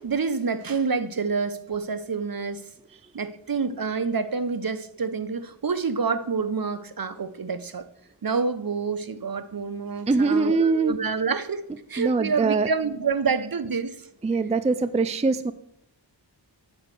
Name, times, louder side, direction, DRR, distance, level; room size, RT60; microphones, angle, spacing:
voice 1, 0.0-2.6 3.1-7.9 8.2-11.6 11.9-13.9, right 5 dB, 50° right, 11 dB, 0.7 m, -27 dB
voice 2, 10.1-11.0 12.0-12.7 14.2-15.5, right 4 dB, 15° right, 12 dB, 0.4 m, -22 dB
8.5 x 4.9 x 6.7 m, 0.76 s
wide cardioid pair, 50°, 45 cm